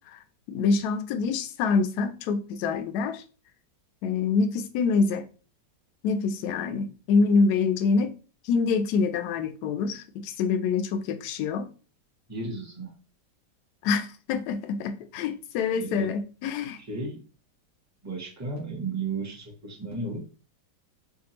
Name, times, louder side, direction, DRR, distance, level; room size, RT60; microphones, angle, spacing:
voice 1, 0.5-3.2 4.0-5.3 6.0-8.1 8.4-11.7 13.8-16.8, left 4 dB, 70° left, 1.0 m, -26 dB
voice 2, 12.3-12.9 15.7-16.1 16.8-17.2 18.0-20.2, right 3 dB, 15° right, 0.7 m, -34 dB
5.0 x 2.4 x 2.8 m
omnidirectional pair, 1.9 m